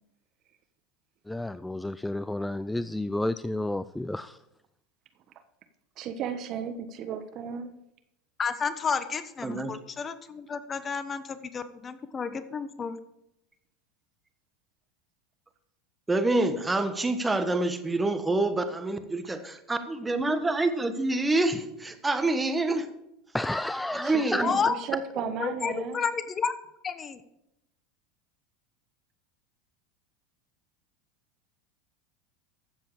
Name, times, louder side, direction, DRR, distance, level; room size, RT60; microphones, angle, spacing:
voice 1, 1.3-4.4 23.3-24.5, left 1 dB, 5° left, 14 dB, 0.4 m, -31 dB
voice 2, 6.0-7.7 24.0-26.0, right 7 dB, 50° right, 10 dB, 1.2 m, -34 dB
voice 3, 8.4-11.2 11.5-13.0 24.4-24.8 25.4-26.5 26.8-27.2, left 6 dB, 30° left, 11 dB, 1.1 m, -30 dB
voice 4, 9.4-9.8 16.1-22.9 23.9-24.6, right 2 dB, 15° right, 8 dB, 1.4 m, -27 dB
14.5 x 7.6 x 4.9 m, 0.84 s
hypercardioid pair, 95°, 0 cm